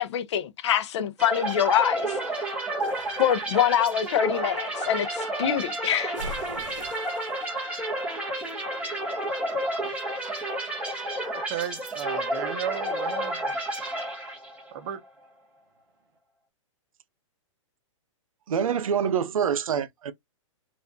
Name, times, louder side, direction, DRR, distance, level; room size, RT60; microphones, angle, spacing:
voice 1, 0.0-2.2 3.2-6.2, left 10 dB, 55° left, 0.6 m, -25 dB
sound 1, 1.2-14.7, right 1 dB, 5° right, 1.1 m, -31 dB
sound 2, 2.8-4.7 6.1-7.4, right 1 dB, 70° right, 1.0 m, -42 dB
voice 2, 11.3-13.4 14.7-15.0, right 9 dB, 40° right, 0.9 m, -34 dB
voice 3, 18.5-20.1, right 7 dB, 90° right, 0.6 m, -26 dB
4.4 x 2.5 x 2.6 m
hypercardioid pair, 155°, 17 cm